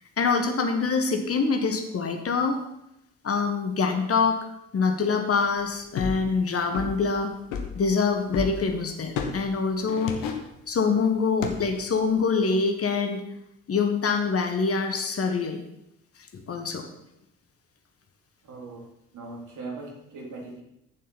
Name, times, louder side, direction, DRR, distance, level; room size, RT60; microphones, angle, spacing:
voice 1, 0.2-2.6 3.2-4.4 4.7-7.3 7.7-10.1 10.7-13.2 13.7-15.6 16.5-16.9, left 5 dB, 40° left, 5 dB, 1.5 m, -25 dB
sound 1, 6.0-6.3 6.7-7.1 7.5-8.6 9.2-9.4 9.8-10.5 11.4-11.8 12.2-12.3, left 6 dB, 60° left, 1.4 m, -31 dB
voice 2, 18.4-18.9 19.1-20.6, right 3 dB, 50° right, -1 dB, 3.3 m, -39 dB
14.5 x 7.3 x 4.2 m, 0.80 s
figure-of-eight pair, 45°, 38 cm